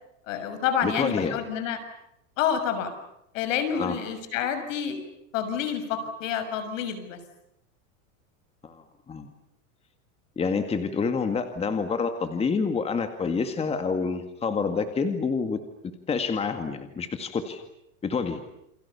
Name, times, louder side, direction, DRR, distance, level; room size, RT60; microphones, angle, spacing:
voice 1, 0.3-1.8 2.4-2.9 3.3-5.0 5.3-7.2, left 8 dB, 70° left, 10 dB, 6.6 m, -28 dB
voice 2, 0.8-1.4 3.8-4.0 8.6-9.3 10.4-15.6 16.1-17.6 18.0-18.4, left 5 dB, 15° left, 7 dB, 2.1 m, -28 dB
29.0 x 27.5 x 7.1 m, 0.80 s
supercardioid pair, 150°, 40 cm